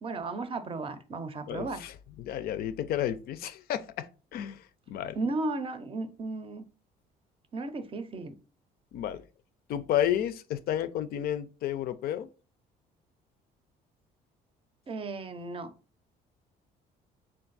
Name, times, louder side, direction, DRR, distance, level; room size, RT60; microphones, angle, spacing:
voice 1, 0.0-1.8 5.2-6.6 7.5-8.4 14.9-15.7, right 3 dB, 30° right, 0.6 m, -34 dB
voice 2, 1.5-5.2 8.9-9.2 9.7-12.3, left 11 dB, 65° left, 0.4 m, -32 dB
3.5 x 2.5 x 3.9 m
cardioid pair, 110°, 17 cm